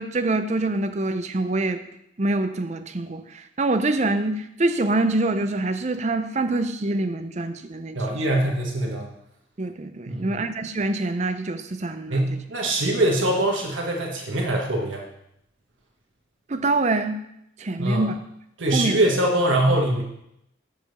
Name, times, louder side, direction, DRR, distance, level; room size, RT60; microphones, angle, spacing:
voice 1, 0.0-1.8 2.2-8.2 9.6-12.2 16.5-17.2 17.6-18.1 18.7-19.0, right 2 dB, 35° right, 9 dB, 0.5 m, -25 dB
voice 2, 7.9-9.1 10.1-10.4 12.1-15.0 17.8-18.1 18.6-20.0, right 1 dB, 90° right, -1 dB, 1.5 m, -23 dB
7.0 x 5.0 x 6.6 m, 0.79 s
head